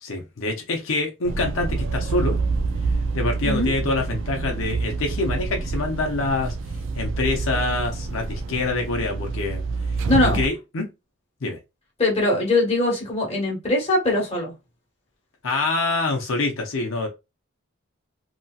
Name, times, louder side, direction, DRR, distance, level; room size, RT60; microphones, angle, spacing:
voice 1, 0.0-2.4 3.1-6.5 7.0-9.6 10.2-10.9 11.4-11.6 15.4-17.1, left 3 dB, 80° left, 0.7 m, -25 dB
sound 1, 1.3-10.5, right 4 dB, 70° right, 0.4 m, -27 dB
voice 2, 10.1-10.4 12.0-14.5, left 2 dB, 30° left, 1.2 m, -21 dB
2.9 x 2.7 x 2.3 m
head